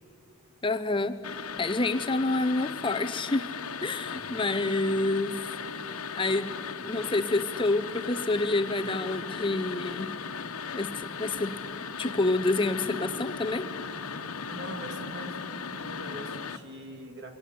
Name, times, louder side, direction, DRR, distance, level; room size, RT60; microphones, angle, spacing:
voice 1, 0.6-3.5 3.8-5.4 6.1-6.5 6.8-10.1 10.7-11.6 12.0-13.7, left 2 dB, 25° left, 8 dB, 0.7 m, -28 dB
sound 1, 1.2-16.6, left 5 dB, 85° left, 1.2 m, -37 dB
voice 2, 14.5-17.3, right 1 dB, 50° right, 4 dB, 3.1 m, -42 dB
27.5 x 22.5 x 9.5 m, 2.4 s
head